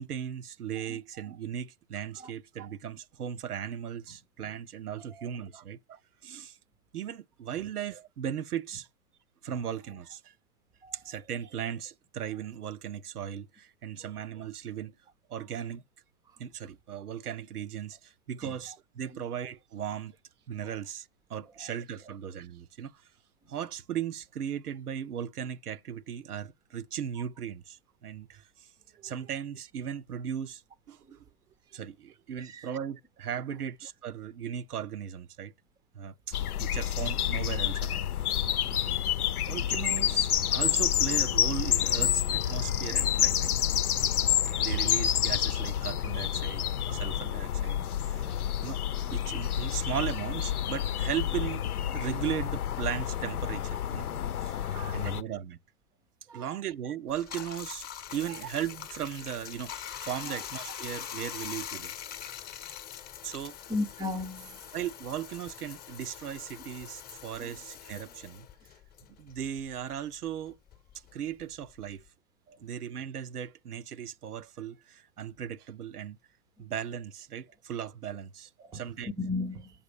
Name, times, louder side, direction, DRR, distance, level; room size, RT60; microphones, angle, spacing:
voice 1, 0.0-6.6 6.9-8.9 9.4-10.3 10.9-14.9 15.3-15.8 16.4-20.1 20.5-23.0 23.5-28.7 29.0-30.6 30.9-31.2 31.7-35.5 35.9-38.0 39.5-43.5 44.4-46.6 46.9-48.8 49.1-54.1 54.4-55.6 56.3-57.9 58.1-61.9 63.2-63.6 64.7-68.5 69.2-70.6 71.1-72.0 72.6-76.2 76.6-79.1, right 9 dB, 85° right, 0.8 m, -37 dB
sound 1, 36.3-55.2, left 10 dB, 80° left, 0.8 m, -29 dB
voice 2, 54.6-55.1 56.3-56.6 63.7-64.6 67.4-67.5 72.5-72.6 78.6-78.8 79.2-79.7, left 2 dB, 10° right, 0.6 m, -36 dB
Bathtub (filling or washing), 57.1-69.9 70.2-72.1, left 10 dB, 20° left, 0.9 m, -43 dB
7.9 x 7.0 x 5.1 m
hypercardioid pair, 125°, 44 cm